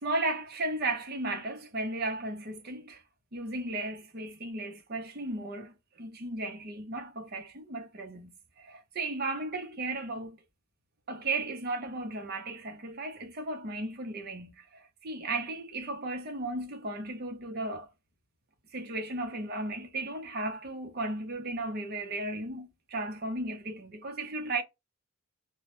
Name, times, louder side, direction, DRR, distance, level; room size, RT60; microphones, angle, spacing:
voice 1, 0.0-3.0 3.3-10.4 11.1-17.9 18.7-24.6, right 2 dB, 50° right, 0.7 m, -35 dB
2.2 x 2.0 x 2.9 m
head